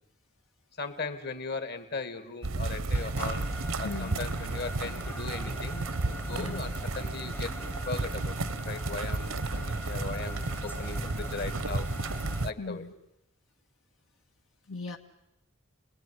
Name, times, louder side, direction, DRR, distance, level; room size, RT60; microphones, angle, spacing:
voice 1, 0.8-3.4 3.8-7.5 7.9-8.4 8.7-11.9 12.4-12.9, left 4 dB, 55° left, 10 dB, 2.4 m, -38 dB
sound 1, 2.4-12.5, right 3 dB, 85° right, 1.1 m, -33 dB
sound 2, 2.9-12.5, equal, 10° left, 0.9 m, -41 dB
voice 2, 3.8-4.2 6.3-6.6 12.6-12.9 14.7-15.0, left 3 dB, 75° left, 3 dB, 1.7 m, -38 dB
29.5 x 20.0 x 9.8 m, 0.85 s
head